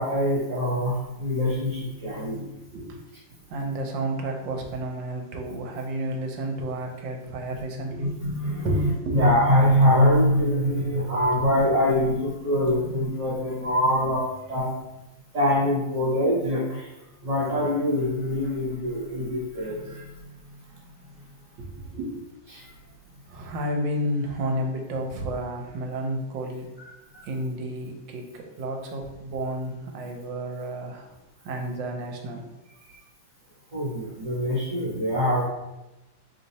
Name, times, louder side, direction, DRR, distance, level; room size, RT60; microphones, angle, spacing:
voice 1, 0.0-2.5 8.0-14.7 15.3-16.9 17.2-20.1 22.5-22.7 26.8-27.2 32.9-33.0 33.7-35.4, equal, 50° right, -8 dB, 1.4 m, -24 dB
voice 2, 2.7-3.0 3.5-8.2 8.6-9.6 17.2-17.3 21.6-22.2 23.3-26.7 27.2-32.4, right 1 dB, 75° right, 2 dB, 1.4 m, -31 dB
3.3 x 2.7 x 4.0 m, 0.98 s
omnidirectional pair, 2.1 m